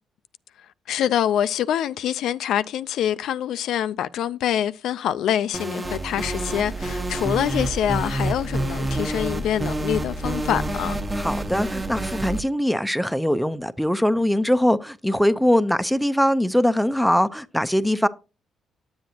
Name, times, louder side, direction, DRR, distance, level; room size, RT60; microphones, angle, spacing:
voice 1, 0.9-11.0, left 10 dB, 80° left, 0.4 m, -25 dB
sound 1, 5.5-12.4, right 2 dB, 20° right, 1.1 m, -28 dB
voice 2, 11.2-18.1, equal, ahead, 0.6 m, -21 dB
9.4 x 7.7 x 2.8 m
cardioid pair, 90°, 0 cm